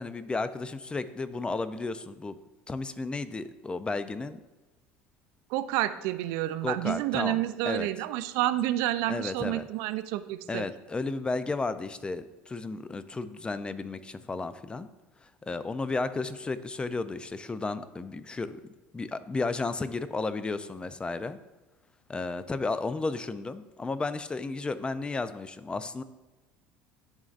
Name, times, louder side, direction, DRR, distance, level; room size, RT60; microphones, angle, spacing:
voice 1, 0.0-2.4 2.7-4.4 6.6-7.9 9.1-9.6 10.5-14.9 15.2-18.6 18.9-21.4 22.1-26.0, left 3 dB, 20° left, 13 dB, 0.4 m, -33 dB
voice 2, 5.5-10.6, right 14 dB, 75° right, 12 dB, 0.4 m, -29 dB
10.5 x 3.9 x 2.5 m, 1.1 s
supercardioid pair, 95°, 6 cm